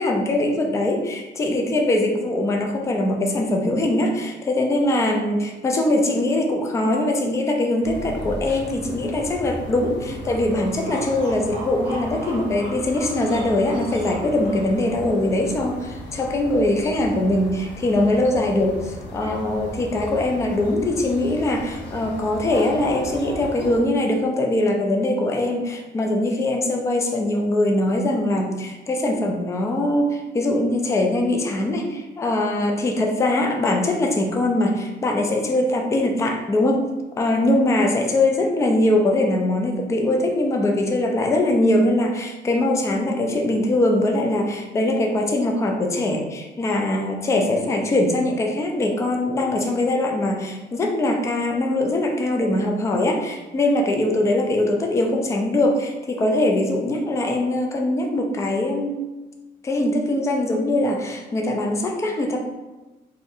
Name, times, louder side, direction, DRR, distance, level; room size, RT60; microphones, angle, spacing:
voice 1, 0.0-36.9 37.2-59.0 59.6-62.4, left 1 dB, 15° left, 2 dB, 0.3 m, -22 dB
sound 1, 7.8-23.8, left 1 dB, 70° left, 0.8 m, -36 dB
sound 2, 9.9-15.0, right 2 dB, 20° right, 0.9 m, -38 dB
2.6 x 2.4 x 4.0 m, 1.1 s
cardioid pair, 150°, 19 cm